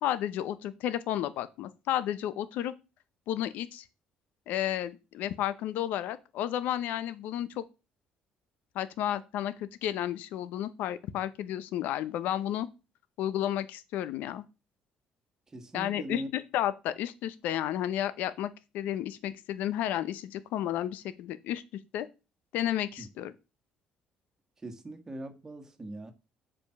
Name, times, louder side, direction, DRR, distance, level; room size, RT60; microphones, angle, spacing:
voice 1, 0.0-2.7 3.3-3.8 4.5-7.6 8.7-12.7 13.2-14.4 15.7-21.6 21.9-22.1 22.5-23.3, left 12 dB, 80° left, 0.7 m, -32 dB
voice 2, 15.5-16.3 23.0-23.1 24.6-26.1, right 1 dB, 20° right, 1.5 m, -40 dB
7.1 x 5.1 x 5.8 m
cardioid pair, 125°, 3 cm